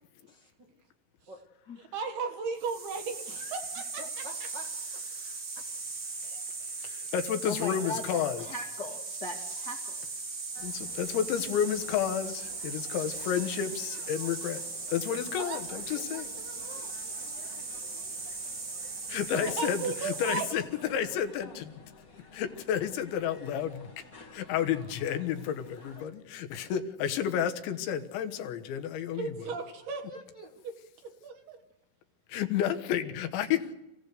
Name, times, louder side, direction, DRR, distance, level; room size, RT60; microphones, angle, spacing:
voice 1, 0.3-0.7 1.3-1.4 3.3-5.0 15.3-15.4 15.7-16.9 17.4-17.6 29.8-30.7, equal, 85° right, -1 dB, 0.9 m, -49 dB
voice 2, 1.9-4.0 6.2-6.7 15.4-15.6 19.3-20.5 28.6-28.7 29.1-30.0 31.0-31.6, right 5 dB, 65° right, 6 dB, 3.2 m, -36 dB
sound 1, 2.6-20.5, right 4 dB, 40° right, 1.5 m, -38 dB
voice 3, 6.8-8.4 10.6-14.6 14.9-16.3 19.1-21.7 22.3-23.9 24.3-29.5 32.3-33.8, left 9 dB, 75° left, 7 dB, 3.4 m, -31 dB
voice 4, 7.4-10.0, left 2 dB, 45° left, -1 dB, 1.3 m, -39 dB
sound 2, 10.5-26.1, left 3 dB, 60° left, 0.8 m, -53 dB
28.0 x 16.5 x 6.7 m, 0.92 s
omnidirectional pair, 5.4 m